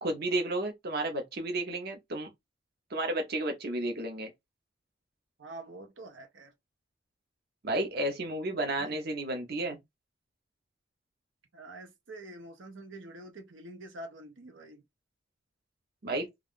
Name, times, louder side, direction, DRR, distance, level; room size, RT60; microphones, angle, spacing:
voice 1, 0.0-2.3 2.9-4.3 7.6-9.8 16.0-16.3, right 1 dB, 55° right, 0.7 m, -32 dB
voice 2, 5.4-6.5 8.8-9.0 11.5-14.8, right 2 dB, 90° right, 0.8 m, -46 dB
2.4 x 2.3 x 3.6 m
head